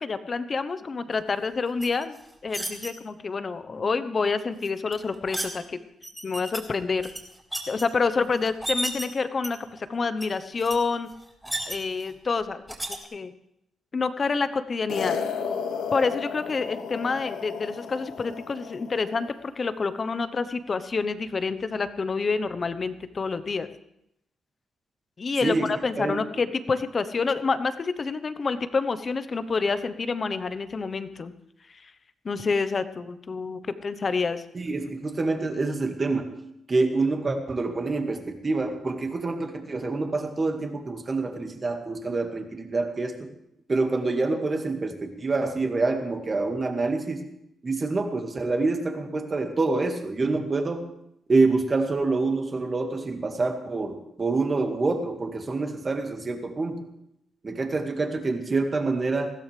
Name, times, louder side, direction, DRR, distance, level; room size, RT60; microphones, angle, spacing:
voice 1, 0.0-2.1 2.4-5.8 6.2-7.1 7.7-11.1 11.7-12.6 13.1-13.3 13.9-15.2 15.9-23.7 25.2-31.3 32.2-34.4, left 4 dB, 35° left, 12 dB, 1.0 m, -28 dB
sound 1, 1.8-2.9 4.6-5.5 6.0-6.6 7.0-7.8 8.4-9.0 9.4-9.8 10.2-10.3 10.6-10.8 11.1-12.1 12.7-13.0, right 1 dB, 5° right, 3.9 m, -33 dB
sound 2, 14.9-19.4, left 6 dB, 80° left, 1.2 m, -33 dB
voice 2, 34.5-36.3 36.7-43.3 43.7-47.2 47.6-50.8 51.3-56.9 57.4-59.3, right 3 dB, 30° right, 4 dB, 2.0 m, -26 dB
20.0 x 15.5 x 3.4 m, 0.77 s
cardioid pair, 105°, 0 cm